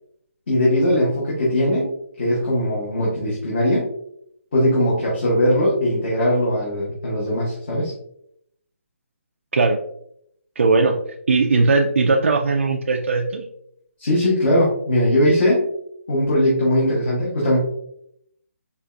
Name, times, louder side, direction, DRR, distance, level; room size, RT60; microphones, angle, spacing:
voice 1, 0.5-1.9 2.2-3.9 4.5-7.9 14.0-15.7 16.1-17.6, left 1 dB, 45° left, -6 dB, 1.2 m, -20 dB
voice 2, 10.6-11.0 11.3-13.4, right 3 dB, 65° right, 2 dB, 0.4 m, -18 dB
5.0 x 2.5 x 2.3 m, 0.71 s
hypercardioid pair, 170°, 8 cm